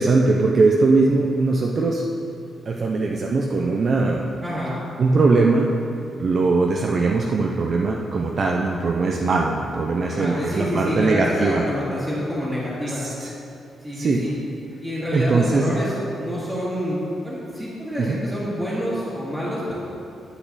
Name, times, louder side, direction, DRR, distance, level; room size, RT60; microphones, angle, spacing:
voice 1, 0.0-2.0 2.7-4.3 5.0-5.7 6.2-11.6 12.8-13.3 13.9-14.3 15.1-15.7 18.0-18.2, right 3 dB, 40° right, 0 dB, 0.5 m, -20 dB
voice 2, 4.4-4.8 10.1-13.0 13.8-14.3 14.8-15.9 16.2-19.7, equal, ahead, -12 dB, 1.9 m, -27 dB
9.0 x 8.3 x 4.1 m, 2.7 s
wide cardioid pair, 160°, 0 cm